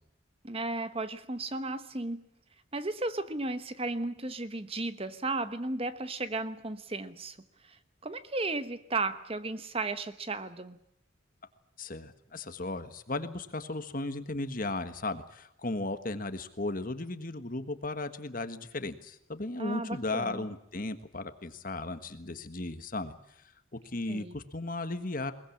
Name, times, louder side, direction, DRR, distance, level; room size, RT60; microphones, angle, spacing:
voice 1, 0.4-2.3 2.7-7.4 7.6-10.8 19.6-20.4 24.1-24.4, right 2 dB, 30° right, 12 dB, 1.0 m, -34 dB
voice 2, 11.8-23.4 23.8-25.3, left 2 dB, 40° left, 10 dB, 1.5 m, -36 dB
22.0 x 20.5 x 8.6 m, 0.76 s
head